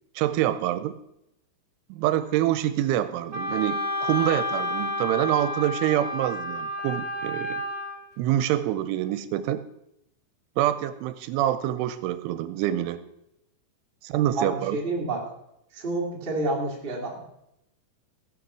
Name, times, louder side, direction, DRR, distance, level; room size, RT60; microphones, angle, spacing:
voice 1, 0.2-1.0 1.9-7.6 8.2-9.6 10.6-13.0 14.0-14.8, right 13 dB, 85° right, 13 dB, 3.0 m, -26 dB
Wind instrument woodwind instrument, 3.3-8.0, left 1 dB, 45° right, 1.9 m, -30 dB
voice 2, 14.3-15.2 15.7-17.2, right 2 dB, 20° right, -2 dB, 1.4 m, -29 dB
16.5 x 7.1 x 6.2 m, 0.82 s
omnidirectional pair, 5.6 m